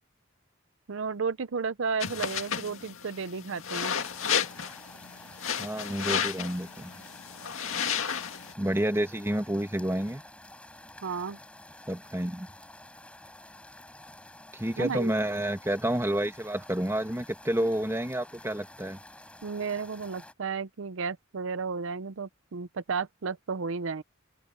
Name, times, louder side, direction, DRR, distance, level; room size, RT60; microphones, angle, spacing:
voice 1, 0.9-4.0 11.0-11.4 14.8-15.1 19.4-24.0, right 5 dB, 70° right, 0.6 m, -33 dB
sound 1, 2.0-8.5, left 7 dB, 80° left, 2.0 m, -32 dB
sound 2, 3.7-20.3, left 1 dB, 5° left, 7.0 m, -50 dB
voice 2, 5.6-6.9 8.6-10.2 11.9-12.5 14.5-19.0, right 1 dB, 10° right, 1.8 m, -29 dB
open air
head